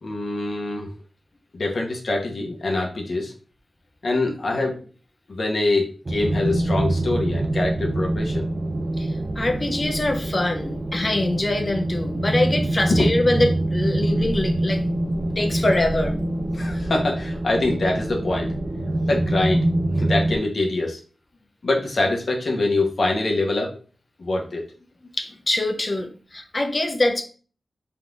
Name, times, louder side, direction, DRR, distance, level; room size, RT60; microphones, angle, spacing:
voice 1, 0.0-0.9 1.5-3.3 4.0-4.9 5.3-8.5 12.9-13.4 13.9-14.1 15.2-15.3 16.5-18.5 19.0-19.7 19.9-21.0 21.6-23.7 24.2-24.6, left 2 dB, 65° left, 1.2 m, -24 dB
sound 1, 6.1-20.4, right 1 dB, 45° right, 0.5 m, -25 dB
voice 2, 9.0-14.9 15.4-16.2 25.2-27.2, left 2 dB, 40° left, 0.7 m, -24 dB
4.2 x 3.8 x 2.6 m
wide cardioid pair, 90°, 0 cm